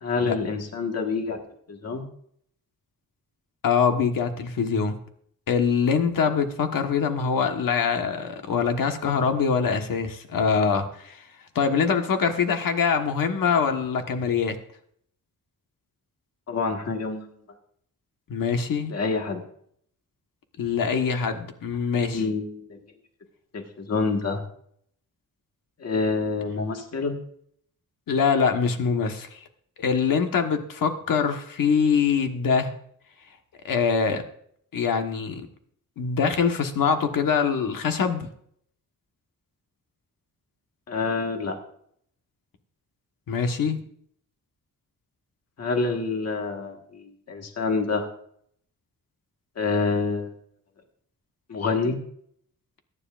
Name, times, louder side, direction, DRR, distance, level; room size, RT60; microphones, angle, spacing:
voice 1, 0.0-1.4 1.7-2.0 16.5-17.3 18.9-19.4 22.1-22.8 23.5-24.4 25.8-27.1 40.9-41.6 45.6-48.1 49.6-50.3 51.5-52.0, left 4 dB, 50° left, 3 dB, 1.6 m, -27 dB
voice 2, 3.6-5.0 5.5-11.2 11.5-14.6 18.3-18.9 20.6-22.2 28.1-29.4 29.8-32.7 33.6-34.2 34.7-35.4 36.0-38.3 43.3-43.8, left 6 dB, 85° left, 6 dB, 1.4 m, -24 dB
21.5 x 9.8 x 2.5 m, 0.66 s
wide cardioid pair, 170°, 33 cm